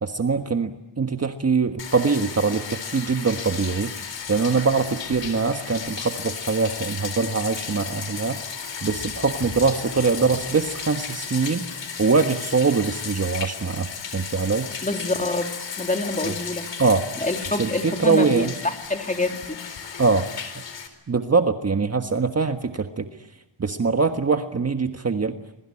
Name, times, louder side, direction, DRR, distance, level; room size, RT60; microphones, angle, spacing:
voice 1, 0.0-3.9 4.3-8.4 8.8-14.7 16.2-16.3 16.8-17.0 17.6-18.5 20.0-20.3 20.5-20.6 21.1-23.1 23.6-25.4, right 4 dB, 30° right, 6 dB, 1.5 m, -23 dB
Bathtub (filling or washing), 1.8-20.9, left 6 dB, 65° left, 4.2 m, -34 dB
voice 2, 14.8-16.7 17.2-19.6, left 2 dB, 15° left, 4 dB, 3.3 m, -27 dB
26.5 x 22.5 x 9.8 m, 0.97 s
cardioid pair, 105°, 47 cm